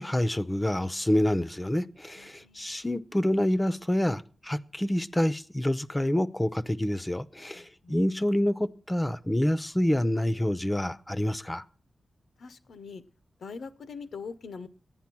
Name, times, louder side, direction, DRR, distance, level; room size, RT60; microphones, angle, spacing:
voice 1, 0.0-11.6, left 1 dB, 15° left, 0.5 m, -27 dB
voice 2, 2.1-2.7 7.5-8.0 12.4-13.0 13.4-14.7, left 5 dB, 85° left, 0.8 m, -42 dB
11.5 x 9.1 x 6.0 m
wide cardioid pair, 90°, 0 cm